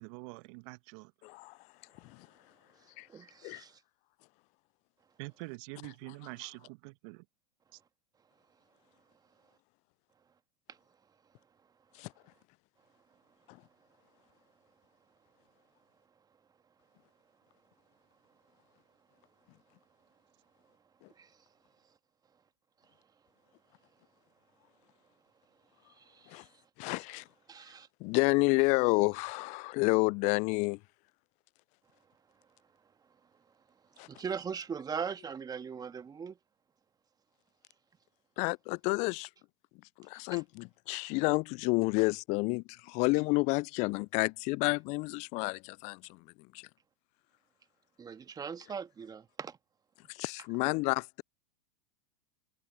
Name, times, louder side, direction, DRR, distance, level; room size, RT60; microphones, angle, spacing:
voice 1, 0.0-1.1 5.2-7.2, right 29 dB, 50° right, 1.2 m, -45 dB
voice 2, 1.2-1.5 3.0-3.1 3.4-3.6 12.0-12.1 26.3-26.4 26.8-27.2 28.0-30.8 34.0-34.1 38.4-39.3 40.0-46.2 46.5-46.7 50.1-51.2, left 27 dB, 35° left, 0.4 m, -30 dB
voice 3, 3.1-3.7 21.2-21.3 26.0-26.5 27.5-27.9 34.1-36.4 40.3-40.4 48.0-49.6, right 6 dB, 20° right, 1.7 m, -40 dB
hypercardioid pair, 95°, 21 cm